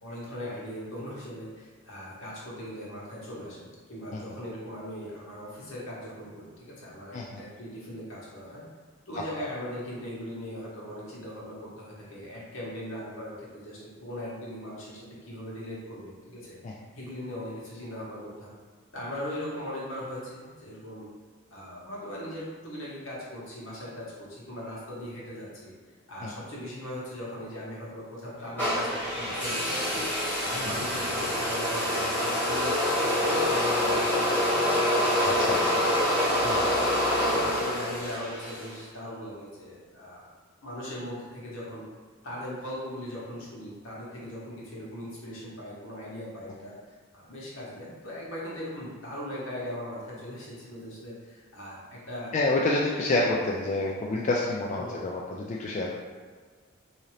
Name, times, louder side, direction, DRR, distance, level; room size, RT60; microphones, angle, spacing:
voice 1, 0.0-8.6 9.1-18.5 18.9-21.1 21.5-25.7 26.1-30.1 30.4-35.8 36.4-40.3 40.6-41.8 42.2-46.8 47.1-52.3 53.1-53.3 54.8-55.0, equal, 75° left, -6 dB, 1.2 m, -39 dB
sound 1, 28.6-38.8, left 1 dB, 10° left, 1.3 m, -26 dB
voice 2, 35.2-35.6 36.4-36.7 52.3-55.9, left 2 dB, 35° left, -3 dB, 0.3 m, -28 dB
3.7 x 2.8 x 3.1 m, 1.5 s
head